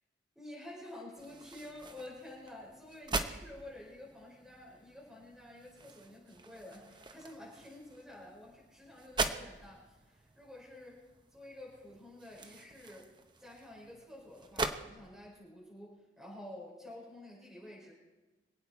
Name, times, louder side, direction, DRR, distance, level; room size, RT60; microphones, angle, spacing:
voice 1, 0.4-13.1 13.4-17.9, left 1 dB, ahead, -5 dB, 5.2 m, -50 dB
sound 1, 1.2-14.8, right 3 dB, 25° right, 0.9 m, -42 dB
26.0 x 8.8 x 4.7 m, 1.2 s
head